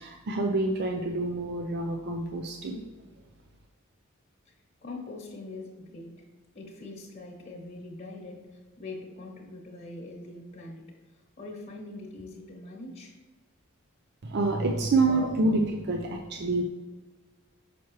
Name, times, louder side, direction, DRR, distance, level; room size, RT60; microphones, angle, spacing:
voice 1, 0.0-2.8 14.2-16.6, right 2 dB, 55° right, 2 dB, 0.5 m, -27 dB
voice 2, 4.8-6.2 6.5-10.9 11.4-13.1, left 2 dB, 40° left, -4 dB, 1.1 m, -42 dB
5.9 x 5.9 x 3.1 m, 1.3 s
head